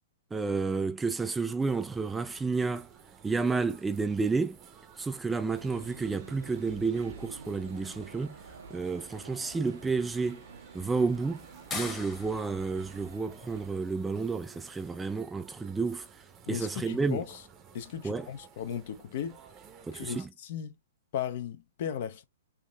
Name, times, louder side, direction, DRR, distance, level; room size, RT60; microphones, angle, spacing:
voice 1, 0.3-2.9 3.2-4.6 5.0-8.4 8.7-10.4 10.7-11.5 11.7-16.1 16.5-17.2 18.0-18.3 19.9-20.3, right 4 dB, 10° right, 0.3 m, -31 dB
sound 1, 1.6-20.3, right 7 dB, 25° right, 0.7 m, -55 dB
sound 2, 3.3-15.2, left 4 dB, 20° left, 1.1 m, -49 dB
sound 3, 5.5-13.7, right 5 dB, 80° right, 0.7 m, -49 dB
voice 2, 16.5-17.4 17.7-19.4 19.9-20.8 21.1-22.2, left 9 dB, 55° left, 0.6 m, -36 dB
3.6 x 2.9 x 2.3 m
hypercardioid pair, 125°, 0 cm